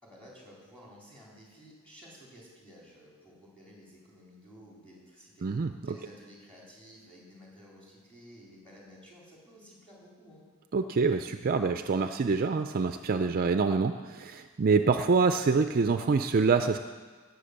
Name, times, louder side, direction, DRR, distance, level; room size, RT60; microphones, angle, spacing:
voice 1, 0.0-10.4, equal, 5° left, -4 dB, 3.8 m, -53 dB
voice 2, 5.4-6.0 10.7-16.8, right 4 dB, 40° right, 8 dB, 0.4 m, -26 dB
17.0 x 8.0 x 6.6 m, 1.5 s
head